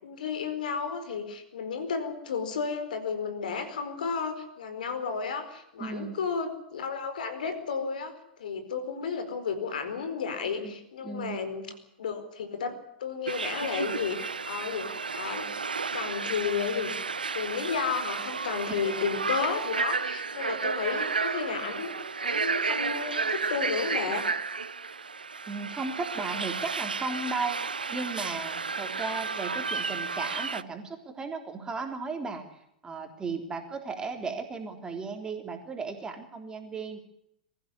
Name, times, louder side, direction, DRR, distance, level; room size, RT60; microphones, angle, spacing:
voice 1, 0.0-8.1 8.4-11.7 12.0-12.7 13.0-15.5 15.9-17.0 17.3-21.9 22.2-24.3, left 5 dB, 65° left, 9 dB, 4.5 m, -32 dB
voice 2, 5.8-6.1 10.5-10.7 11.0-11.4 18.7-18.8 25.5-32.4 32.8-37.0, right 4 dB, 15° right, 5 dB, 3.6 m, -35 dB
sound 1, 13.3-30.6, right 4 dB, 80° right, 0.8 m, -32 dB
23.5 x 15.5 x 9.8 m, 0.80 s
figure-of-eight pair, 100°, 5 cm